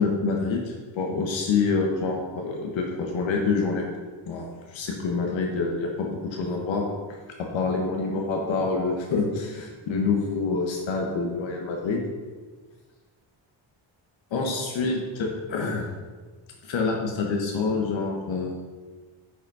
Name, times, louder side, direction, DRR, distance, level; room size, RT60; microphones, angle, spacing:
voice 1, 0.0-3.8 4.3-6.9 7.4-12.0 14.3-15.9 16.6-18.7, left 4 dB, 85° left, 1 dB, 1.3 m, -27 dB
8.4 x 5.3 x 5.5 m, 1.4 s
wide cardioid pair, 160°, 45 cm